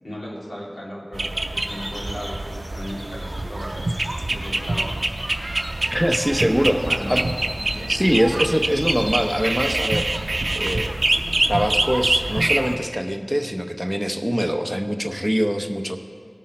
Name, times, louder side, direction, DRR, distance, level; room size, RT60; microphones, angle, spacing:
voice 1, 0.0-3.9 4.3-4.9 6.4-7.2 7.6-8.0, equal, 90° left, -5 dB, 2.3 m, -36 dB
sound 1, 1.1-12.8, right 2 dB, 70° right, 0.6 m, -25 dB
sound 2, 1.6-10.6, equal, 50° left, 1.4 m, -39 dB
voice 2, 5.9-6.8 7.1-7.2 7.9-10.3 10.6-11.0 11.5-16.0, equal, ahead, 5 dB, 0.8 m, -23 dB
18.0 x 6.2 x 4.3 m, 2.1 s
wide cardioid pair, 55°, 0 cm